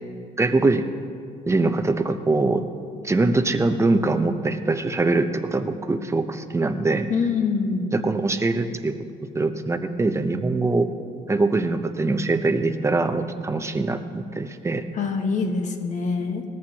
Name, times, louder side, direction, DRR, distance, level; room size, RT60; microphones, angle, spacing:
voice 1, 0.4-0.8 1.5-2.7 3.0-7.1 7.9-9.0 9.3-10.9 11.3-14.8, right 3 dB, 15° right, 8 dB, 0.8 m, -23 dB
voice 2, 7.1-8.0 14.9-16.4, left 4 dB, 45° left, 4 dB, 1.4 m, -25 dB
19.5 x 14.0 x 2.9 m, 2.3 s
cardioid pair, 110°, 17 cm